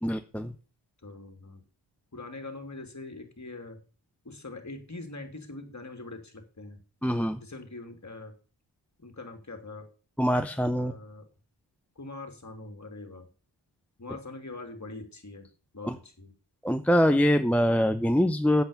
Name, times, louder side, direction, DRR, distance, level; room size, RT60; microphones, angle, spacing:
voice 1, 0.0-0.5 7.0-7.4 10.2-10.9 15.8-16.0 16.6-18.6, equal, 5° left, 8 dB, 0.8 m, -24 dB
voice 2, 1.0-1.6 2.1-3.8 4.2-6.8 7.4-8.3 9.0-9.8 10.8-11.2 12.0-13.3 14.0-15.5 15.7-16.3, left 2 dB, 35° left, 5 dB, 2.9 m, -43 dB
8.4 x 8.1 x 7.0 m, 0.36 s
wide cardioid pair, 70°, 46 cm